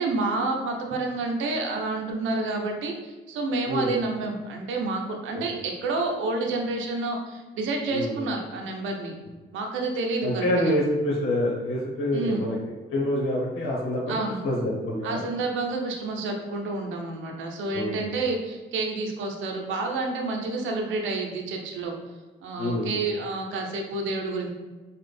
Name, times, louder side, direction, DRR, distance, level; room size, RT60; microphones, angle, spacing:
voice 1, 0.0-9.1 9.5-10.8 12.1-12.4 14.1-14.4 15.0-22.0 22.4-24.5, right 3 dB, 80° right, 2 dB, 0.7 m, -29 dB
voice 2, 7.9-8.3 10.2-12.6 12.9-14.1 14.4-15.3 17.7-18.1 22.5-23.0, left 1 dB, 80° left, -5 dB, 1.1 m, -26 dB
4.0 x 2.4 x 3.3 m, 1.2 s
cardioid pair, 90°, 20 cm